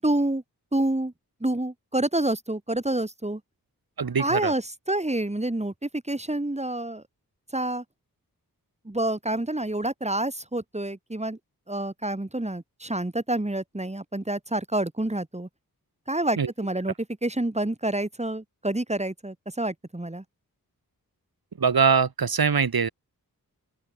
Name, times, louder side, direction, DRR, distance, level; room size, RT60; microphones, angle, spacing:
voice 1, 0.0-0.4 0.7-1.1 1.4-3.4 4.2-7.0 7.5-7.8 8.8-11.4 11.7-15.5 16.1-16.9 17.2-20.2, right 1 dB, 15° right, 7.7 m, -28 dB
voice 2, 4.0-4.5 16.4-16.5 21.6-22.9, right 6 dB, 75° right, 4.3 m, -22 dB
wide cardioid pair, 80°, 37 cm